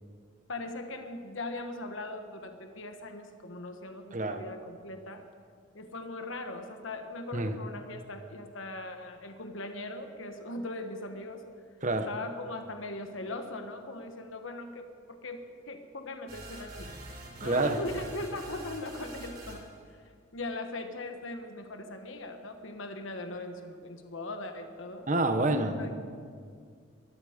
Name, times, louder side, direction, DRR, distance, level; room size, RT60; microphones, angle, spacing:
voice 1, 0.5-5.2 5.7-11.4 11.9-16.9 17.4-25.1 25.8-25.9, left 2 dB, 75° left, 6 dB, 1.2 m, -40 dB
voice 2, 4.1-4.4 7.3-7.6 11.8-12.1 17.4-17.8 25.1-25.9, right 2 dB, 40° right, 8 dB, 1.1 m, -28 dB
sound 1, 16.3-19.8, right 1 dB, 55° right, 4.3 m, -45 dB
22.5 x 12.5 x 5.1 m, 2.1 s
head